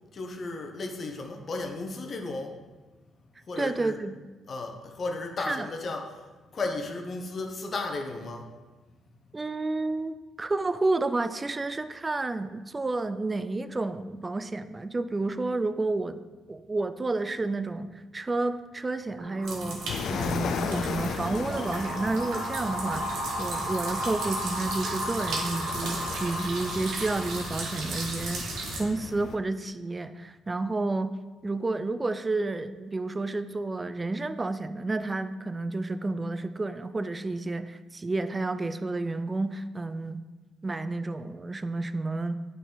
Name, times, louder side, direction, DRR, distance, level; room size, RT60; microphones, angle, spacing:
voice 1, 0.1-2.6 3.5-4.0 4.5-6.2 6.5-8.5, left 3 dB, 45° left, 4 dB, 0.9 m, -34 dB
voice 2, 3.6-4.2 5.5-5.7 9.3-16.2 16.5-19.8 20.1-28.4 28.8-31.2 31.4-40.2 40.6-42.4, right 2 dB, 25° right, 11 dB, 0.3 m, -30 dB
sound 1, 19.2-28.7, equal, 70° right, 1.7 m, -36 dB
sound 2, 19.4-28.8, right 2 dB, 85° right, 1.6 m, -36 dB
sound 3, 19.9-29.4, left 6 dB, 70° left, 0.4 m, -37 dB
9.0 x 4.0 x 3.9 m, 1.3 s
cardioid pair, 90°, 0 cm